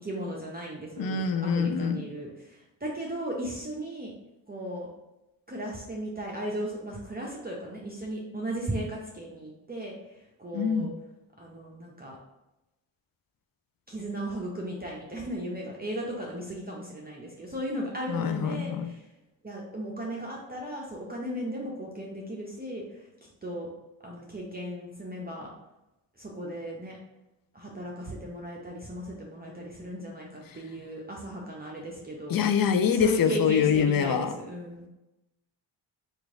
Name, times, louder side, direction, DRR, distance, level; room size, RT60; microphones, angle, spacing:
voice 1, 0.0-4.1 4.5-4.9 5.5-10.9 11.4-12.2 13.9-19.1 19.4-23.7 24.0-25.5 26.2-27.0 27.5-32.4 32.9-34.9, right 1 dB, 20° right, -3 dB, 0.7 m, -36 dB
voice 2, 1.0-2.0 10.5-10.9 18.1-18.9 32.3-34.3, left 7 dB, 45° left, 9 dB, 0.5 m, -25 dB
3.0 x 2.5 x 3.7 m, 0.95 s
supercardioid pair, 45°, 49 cm